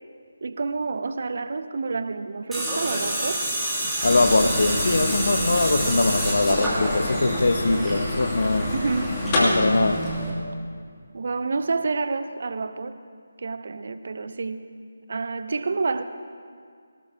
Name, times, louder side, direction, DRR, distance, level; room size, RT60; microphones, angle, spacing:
voice 1, 0.4-3.4 8.5-9.3 11.1-13.0 13.4-14.6 15.1-16.0, right 4 dB, 50° right, 11 dB, 0.7 m, -29 dB
Tools, 2.5-10.3, right 1 dB, 5° right, 2.9 m, -29 dB
voice 2, 4.0-8.7 9.4-10.1, left 2 dB, 60° left, 9 dB, 1.0 m, -22 dB
sound 1, 4.0-10.2, left 1 dB, 25° left, 2.8 m, -28 dB
23.0 x 18.5 x 2.9 m, 2.1 s
figure-of-eight pair, 155°, 0 cm